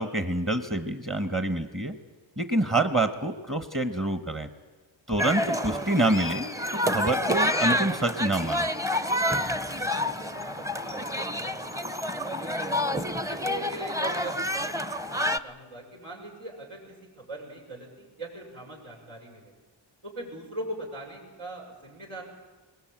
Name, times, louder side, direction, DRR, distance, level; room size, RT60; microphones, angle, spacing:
voice 1, 0.0-1.9 2.4-4.5 5.1-6.6 6.9-8.7, right 2 dB, 25° right, 8 dB, 1.3 m, -27 dB
sound 1, 5.2-15.4, equal, 5° right, 0.7 m, -28 dB
voice 2, 9.4-11.5 11.9-12.7 13.3-19.5 20.0-22.2, right 1 dB, 85° right, -2 dB, 6.7 m, -41 dB
22.0 x 19.0 x 9.0 m, 1.3 s
wide cardioid pair, 80°, 47 cm